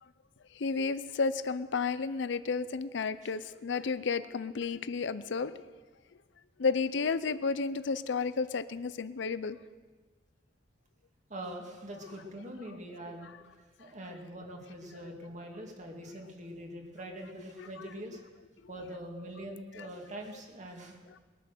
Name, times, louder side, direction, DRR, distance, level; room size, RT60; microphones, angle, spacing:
voice 1, 0.6-5.6 6.6-9.6, left 4 dB, 70° left, 14 dB, 0.5 m, -32 dB
voice 2, 11.3-18.3 18.7-21.0, right 1 dB, 40° right, 2 dB, 2.1 m, -44 dB
20.5 x 9.1 x 6.7 m, 1.4 s
head